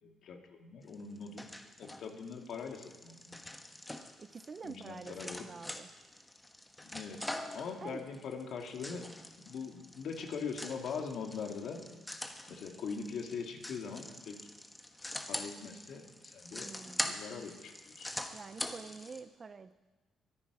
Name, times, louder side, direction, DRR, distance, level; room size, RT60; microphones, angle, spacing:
voice 1, 0.0-1.5 1.8-3.3 4.6-5.5 6.8-11.9 12.5-14.5 15.3-16.7 17.0-18.1, left 5 dB, 70° left, 4 dB, 2.0 m, -42 dB
sound 1, 0.9-19.2, left 1 dB, 10° left, 1.3 m, -44 dB
voice 2, 4.2-5.9 7.8-8.0 16.5-17.2 18.3-19.7, right 5 dB, 40° right, 12 dB, 0.6 m, -47 dB
23.0 x 10.0 x 4.9 m, 1.2 s
cardioid pair, 90°, 0 cm